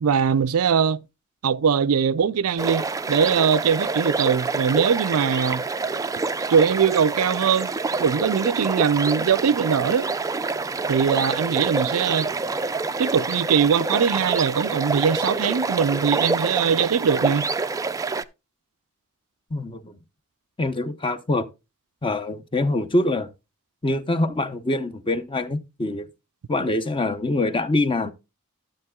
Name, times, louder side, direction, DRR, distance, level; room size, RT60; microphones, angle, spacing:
voice 1, 0.0-1.0 1.4-5.6 6.5-7.7 8.0-10.1 10.9-12.3 13.0-17.5, right 7 dB, 85° right, 0.5 m, -21 dB
sound 1, 2.6-18.2, right 3 dB, 15° right, 0.4 m, -27 dB
voice 2, 19.5-20.0 20.6-21.5 22.0-23.3 23.8-26.1 26.5-28.1, left 2 dB, 25° left, 0.7 m, -24 dB
12.5 x 7.7 x 2.2 m
head